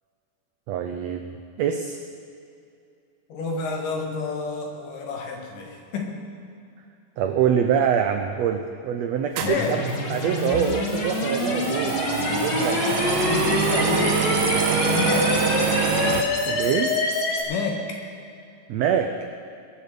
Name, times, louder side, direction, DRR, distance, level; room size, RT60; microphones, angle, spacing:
voice 1, 0.7-2.0 7.2-9.8 10.1-12.0 12.3-12.8 16.4-16.9 18.7-19.1, right 8 dB, 85° right, 5 dB, 1.5 m, -24 dB
voice 2, 3.3-6.1 9.4-10.0 12.7-15.5 17.5-18.0, left 4 dB, 75° left, 1 dB, 3.2 m, -30 dB
sound 1, 9.4-17.4, left 3 dB, 60° left, 2.4 m, -26 dB
sound 2, 9.4-16.2, right 8 dB, 70° right, 2.1 m, -26 dB
21.5 x 7.3 x 6.8 m, 2.5 s
omnidirectional pair, 3.8 m